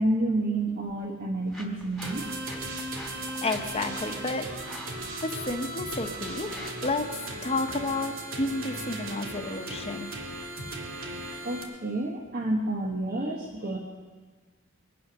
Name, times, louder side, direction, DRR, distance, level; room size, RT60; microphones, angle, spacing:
voice 1, 0.0-2.3 11.4-13.8, right 1 dB, 50° right, -1 dB, 1.4 m, -29 dB
sound 1, 0.5-10.5, equal, ahead, 2.1 m, -49 dB
sound 2, 2.0-11.6, right 2 dB, 80° right, 2.3 m, -37 dB
voice 2, 3.0-4.5 5.2-10.1, left 2 dB, 30° left, 5 dB, 1.1 m, -31 dB
22.0 x 9.2 x 6.0 m, 1.5 s
head